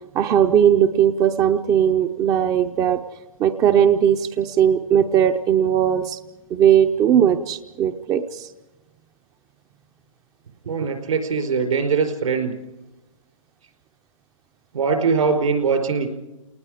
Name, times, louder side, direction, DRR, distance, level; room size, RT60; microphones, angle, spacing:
voice 1, 0.1-3.0 3.4-6.2 6.5-8.5, right 9 dB, 20° right, 8 dB, 0.6 m, -18 dB
voice 2, 10.6-12.5 14.7-16.1, right 5 dB, 70° right, 5 dB, 4.7 m, -21 dB
30.0 x 19.5 x 5.0 m, 1.1 s
hypercardioid pair, 135°, 18 cm